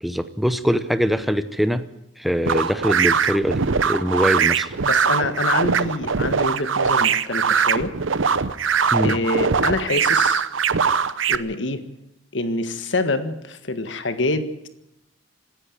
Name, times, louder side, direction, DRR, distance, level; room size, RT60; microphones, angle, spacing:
voice 1, 0.0-1.8 2.2-4.8 8.9-9.2, equal, ahead, 11 dB, 0.7 m, -22 dB
sound 1, 2.5-11.4, right 6 dB, 80° right, 0.8 m, -21 dB
voice 2, 4.8-7.9 9.0-10.4 11.3-11.8 12.3-14.7, left 2 dB, 70° left, 10 dB, 1.7 m, -26 dB
26.5 x 10.0 x 9.8 m, 0.85 s
head